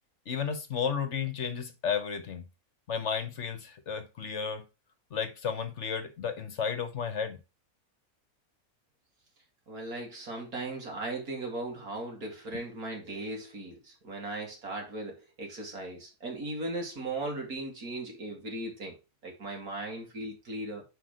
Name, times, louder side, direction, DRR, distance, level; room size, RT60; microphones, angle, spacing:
voice 1, 0.3-2.5 2.9-4.7 5.1-7.4 12.5-12.6, left 7 dB, 55° left, 1.3 m, -33 dB
voice 2, 9.7-19.0 19.2-20.8, right 2 dB, 80° right, 2.9 m, -37 dB
6.0 x 5.0 x 5.0 m
omnidirectional pair, 1.5 m